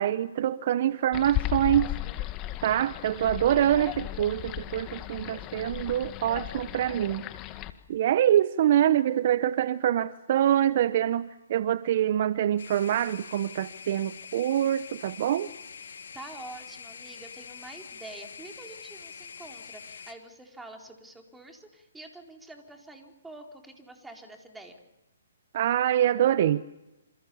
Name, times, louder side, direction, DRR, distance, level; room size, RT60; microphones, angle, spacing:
voice 1, 0.0-1.9 2.6-7.2 7.9-15.5 25.5-26.7, right 11 dB, 50° right, 0.9 m, -25 dB
sound 1, 1.1-7.7, left 14 dB, 25° left, 1.8 m, -35 dB
sound 2, 12.6-20.1, left 6 dB, 70° left, 2.7 m, -45 dB
voice 2, 15.8-24.7, right 2 dB, 5° right, 4.2 m, -47 dB
28.0 x 27.5 x 7.1 m
hypercardioid pair, 135°, 0 cm